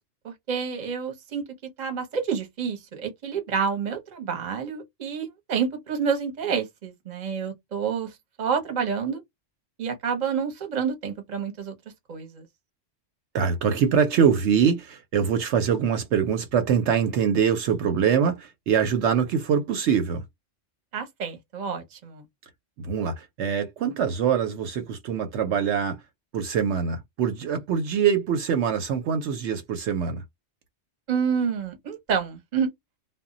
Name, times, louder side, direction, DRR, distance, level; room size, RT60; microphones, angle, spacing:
voice 1, 0.2-1.4 1.8-9.2 9.8-11.8 12.1-12.5 20.9-22.2 31.1-32.7, right 6 dB, 40° right, 0.8 m, -28 dB
voice 2, 13.3-20.2 22.8-26.0 26.3-30.2, right 7 dB, 70° right, 0.8 m, -24 dB
2.1 x 2.1 x 3.6 m
omnidirectional pair, 1.3 m